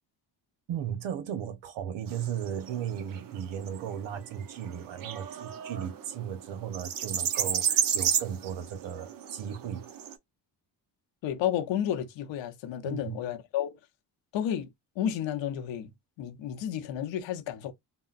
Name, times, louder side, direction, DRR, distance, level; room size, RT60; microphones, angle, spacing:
voice 1, 0.7-9.9 12.8-13.2, right 9 dB, 85° right, 0.9 m, -36 dB
sound 1, 2.1-10.1, right 9 dB, 50° right, 0.6 m, -33 dB
voice 2, 11.2-13.7 14.3-14.7 15.0-15.9 16.2-17.7, left 10 dB, 85° left, 0.8 m, -31 dB
3.7 x 2.1 x 2.4 m
cardioid pair, 105°, 44 cm